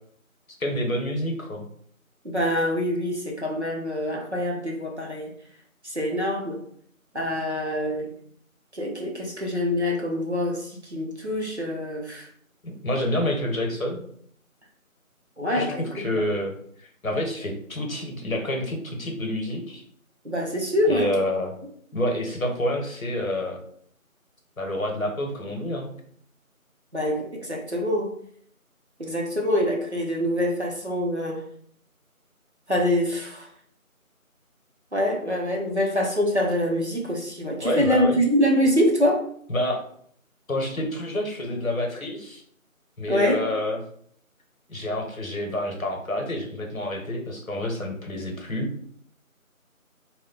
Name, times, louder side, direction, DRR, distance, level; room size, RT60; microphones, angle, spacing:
voice 1, 0.6-1.6 12.6-14.0 15.5-15.7 15.9-16.5 17.0-19.8 20.9-21.5 21.9-23.6 24.6-25.9 37.6-38.2 39.5-39.8 40.5-42.4 43.0-43.8 44.7-48.7, left 1 dB, 70° left, 2 dB, 0.8 m, -28 dB
voice 2, 2.2-5.3 5.8-6.6 7.1-8.1 8.7-12.3 15.4-16.0 20.2-21.1 26.9-28.1 29.0-31.4 32.7-33.5 34.9-39.2 43.1-43.4, equal, 55° right, -1 dB, 0.6 m, -25 dB
2.2 x 2.1 x 3.7 m, 0.62 s
figure-of-eight pair, 180°, 43 cm